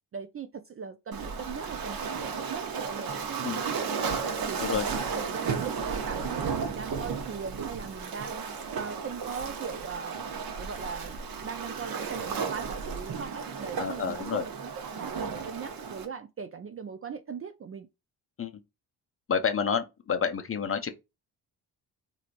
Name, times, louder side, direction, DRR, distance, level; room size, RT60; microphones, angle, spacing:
voice 1, 0.1-2.1 2.4-4.1 4.5-8.4 8.7-10.2 10.6-17.9, right 6 dB, 30° right, 0.4 m, -40 dB
Waves surf, 1.1-16.1, right 5 dB, 50° right, 0.8 m, -34 dB
voice 2, 13.8-14.4 18.4-18.5 19.3-20.9, left 6 dB, 30° left, 0.6 m, -29 dB
3.0 x 2.7 x 2.5 m
supercardioid pair, 50°, 47 cm